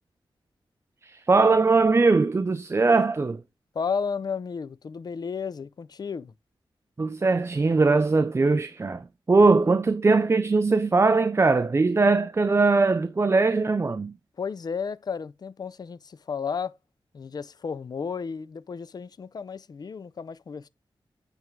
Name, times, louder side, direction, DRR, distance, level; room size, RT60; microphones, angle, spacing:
voice 1, 1.0-3.4 7.0-14.1, right 3 dB, 30° right, 0.5 m, -21 dB
voice 2, 3.7-6.3 14.4-16.7 17.1-20.7, left 6 dB, 50° left, 0.5 m, -33 dB
9.0 x 3.6 x 4.5 m
wide cardioid pair, 100°, 9 cm